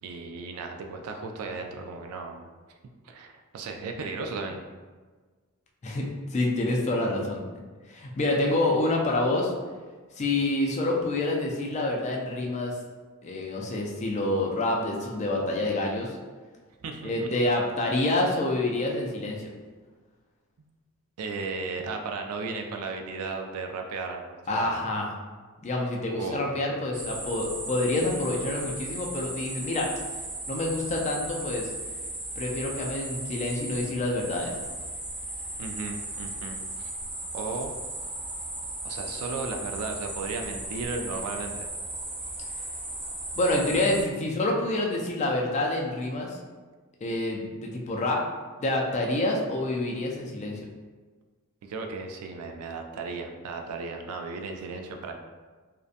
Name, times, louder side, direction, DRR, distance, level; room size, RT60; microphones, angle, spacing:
voice 1, 0.0-2.5 3.0-4.7 16.8-17.3 21.2-24.8 26.2-26.4 35.6-36.9 37.3-37.7 38.8-41.7 51.6-55.1, right 4 dB, 75° right, 4 dB, 0.3 m, -35 dB
voice 2, 5.8-7.4 7.9-9.5 10.2-12.7 13.2-16.2 17.0-19.5 24.5-25.1 25.6-29.9 30.5-31.7 32.4-34.5 43.4-46.4 47.0-48.2 48.6-50.6, left 2 dB, 30° left, -1 dB, 0.3 m, -27 dB
sound 1, 26.9-44.0, right 2 dB, 25° right, 0.6 m, -36 dB
2.6 x 2.1 x 2.4 m, 1.4 s
head